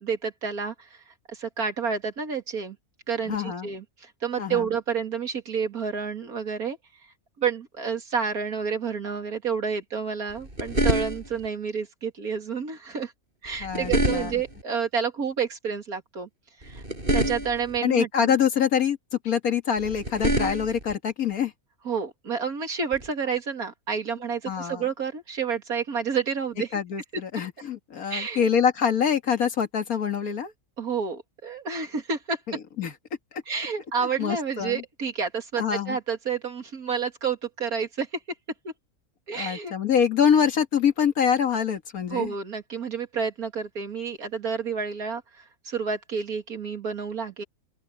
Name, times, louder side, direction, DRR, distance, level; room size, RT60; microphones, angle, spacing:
voice 1, 0.0-0.9 1.3-2.8 3.1-6.8 7.4-13.1 13.4-16.3 16.6-16.8 17.1-18.3 21.8-26.7 28.1-28.5 30.8-32.4 33.5-38.1 38.6-38.7 39.3-39.7 42.1-47.4, right 6 dB, 85° right, 2.9 m, -29 dB
voice 2, 3.3-3.7 4.4-4.7 13.6-14.3 17.8-19.0 19.2-21.5 24.5-24.8 26.7-30.5 32.5-32.9 34.0-34.8 35.6-36.0 39.3-42.3, left 7 dB, 75° left, 2.1 m, -25 dB
sound 1, 10.3-11.5 13.5-14.6 16.6-17.8 19.8-20.9 22.9-23.1, right 1 dB, 35° right, 8.2 m, -27 dB
open air
omnidirectional pair, 1.5 m